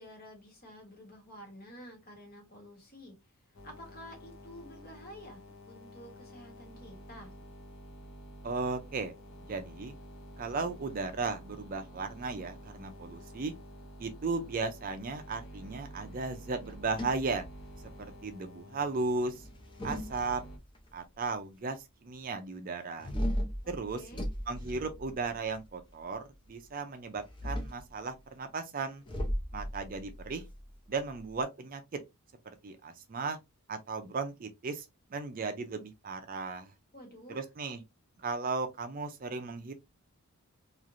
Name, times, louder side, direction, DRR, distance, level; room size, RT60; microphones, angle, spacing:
voice 1, 0.0-3.1 3.6-7.3 23.9-24.2 36.9-37.4, equal, 40° left, 1.2 m, -50 dB
sound 1, 3.5-20.6, equal, 60° left, 0.8 m, -50 dB
voice 2, 8.4-9.1 9.5-9.9 10.4-13.5 14.0-17.4 18.0-19.4 19.8-20.4 20.9-23.1 23.7-24.0 24.5-29.0 29.5-30.4 30.9-31.8 32.6-33.4 33.7-34.9 35.1-36.7 37.3-37.8 38.2-39.7, right 4 dB, 40° right, 0.4 m, -36 dB
sound 2, 16.6-18.0 19.3-20.8 23.0-25.6 27.1-27.9 29.1-31.4, equal, 20° left, 0.6 m, -37 dB
3.1 x 2.4 x 2.5 m
head